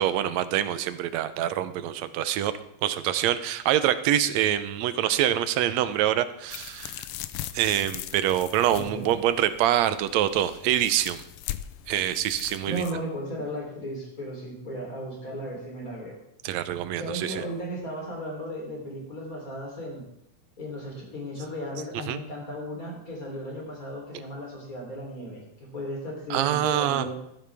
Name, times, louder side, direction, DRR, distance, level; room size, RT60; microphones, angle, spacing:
voice 1, 0.0-2.5 2.8-7.0 7.5-11.2 11.9-12.8 16.4-17.4 22.1-22.2 26.3-27.1, right 11 dB, 75° right, 13 dB, 1.9 m, -25 dB
sound 1, 6.5-12.9, left 13 dB, 90° left, 1.3 m, -40 dB
voice 2, 8.7-9.2 12.7-16.2 17.0-20.0 20.6-27.2, equal, 30° left, -1 dB, 3.8 m, -35 dB
14.5 x 12.5 x 3.5 m, 0.79 s
omnidirectional pair, 3.3 m